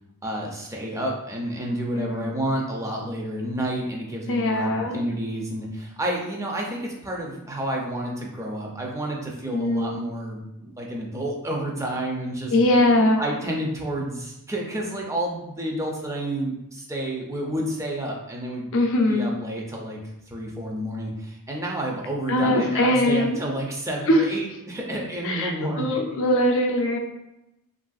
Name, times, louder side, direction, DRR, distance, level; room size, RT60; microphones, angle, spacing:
voice 1, 0.2-12.6 13.2-18.7 19.1-20.0 20.3-26.0, right 1 dB, 15° right, -1 dB, 0.4 m, -30 dB
voice 2, 2.0-2.3 4.3-5.0 9.5-10.0 12.5-13.3 18.7-19.4 22.3-23.4 24.1-24.2 25.2-27.0, left 1 dB, 60° left, 2 dB, 0.4 m, -21 dB
3.2 x 2.5 x 2.3 m, 0.90 s
head